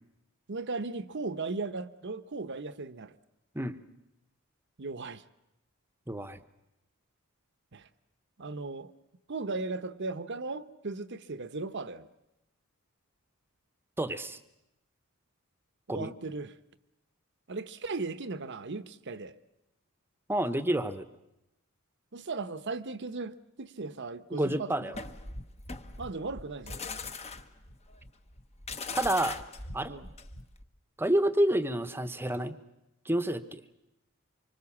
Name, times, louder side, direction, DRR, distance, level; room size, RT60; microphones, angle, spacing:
voice 1, 0.5-3.2 4.8-5.2 7.7-7.9 8.4-8.9 9.3-12.1 15.9-16.5 17.5-19.3 22.1-24.8 26.0-26.8 29.9-30.1, right 3 dB, 55° right, 0.9 m, -37 dB
voice 2, 6.1-6.4 14.0-14.4 15.9-16.1 20.3-21.1 24.3-24.9 28.9-29.4 29.7-30.0 31.0-32.6 33.1-33.6, right 1 dB, 10° right, 0.9 m, -29 dB
sound 1, 24.9-30.6, left 3 dB, 30° left, 1.1 m, -40 dB
25.5 x 24.5 x 7.3 m
head